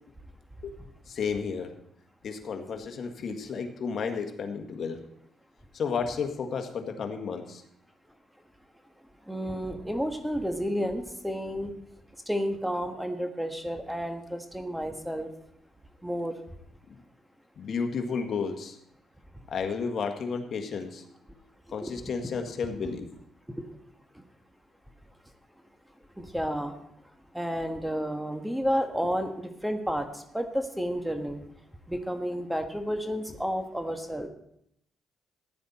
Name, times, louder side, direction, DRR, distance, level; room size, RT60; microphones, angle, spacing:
voice 1, 1.1-1.7 2.2-5.0 5.7-7.6 17.6-18.8 19.5-21.0 21.7-23.1, left 5 dB, 55° left, 5 dB, 1.7 m, -32 dB
voice 2, 9.3-11.7 12.3-15.3 16.0-16.3 21.8-21.9 26.2-26.7 27.3-30.1 30.3-31.4 31.9-34.3, equal, 5° right, 6 dB, 1.4 m, -31 dB
14.5 x 9.7 x 4.3 m, 0.75 s
cardioid pair, 90°, 0 cm